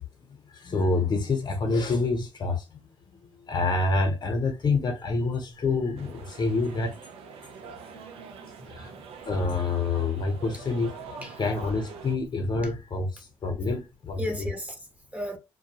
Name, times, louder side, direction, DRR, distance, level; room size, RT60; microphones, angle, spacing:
voice 1, 0.5-2.8 3.2-6.9 7.6-8.9 9.2-11.1 11.4-14.2, left 3 dB, 45° left, 0.9 m, -27 dB
sound 1, 6.0-12.1, right 6 dB, 75° right, 0.5 m, -45 dB
voice 2, 8.5-9.0 11.2-11.4 14.2-15.4, equal, 15° right, 0.9 m, -36 dB
2.3 x 2.2 x 2.9 m
supercardioid pair, 60°, 10 cm